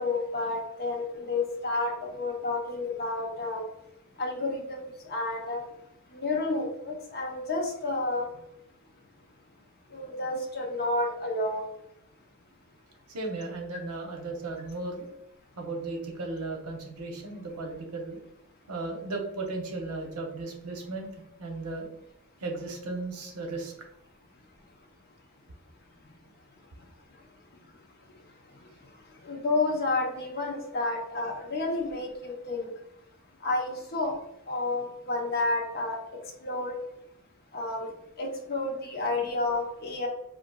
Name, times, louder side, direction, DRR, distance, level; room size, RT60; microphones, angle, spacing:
voice 1, 0.0-3.6 4.2-5.6 6.1-8.3 9.9-11.6 29.2-32.7 33.4-34.1 34.5-36.0 36.4-36.7 37.5-37.9 38.2-40.1, left 2 dB, 45° left, 0 dB, 0.8 m, -30 dB
voice 2, 13.1-15.1 15.6-18.2 18.7-21.1 21.4-21.9 22.4-23.7, right 3 dB, 85° right, 2 dB, 0.8 m, -35 dB
3.8 x 2.4 x 2.3 m, 0.83 s
head